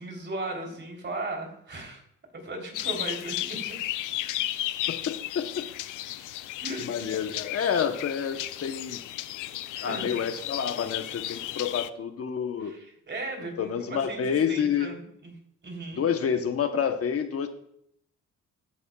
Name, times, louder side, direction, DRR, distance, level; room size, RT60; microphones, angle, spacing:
voice 1, 0.0-2.0 2.3-3.8 6.6-7.1 9.7-10.2 12.6-14.2 14.5-15.3 15.6-16.0, right 2 dB, 40° right, 2 dB, 3.2 m, -37 dB
sound 1, 2.7-11.9, left 14 dB, 85° left, 0.5 m, -34 dB
voice 2, 4.9-5.7 6.8-9.0 9.8-12.7 13.4-14.9 15.9-17.5, left 7 dB, 50° left, 7 dB, 0.9 m, -28 dB
13.0 x 9.6 x 2.3 m, 0.71 s
cardioid pair, 90°, 30 cm